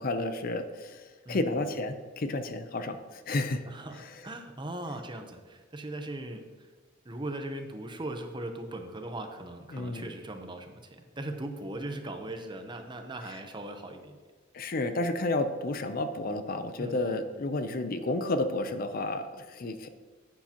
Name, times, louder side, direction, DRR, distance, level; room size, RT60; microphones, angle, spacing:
voice 1, 0.0-3.7 9.7-10.1 14.5-19.9, left 2 dB, 45° left, 9 dB, 0.5 m, -31 dB
voice 2, 1.2-1.8 3.7-6.7 7.0-14.2 16.8-17.2, right 1 dB, 25° right, 6 dB, 0.8 m, -39 dB
10.0 x 8.3 x 2.9 m, 1.5 s
head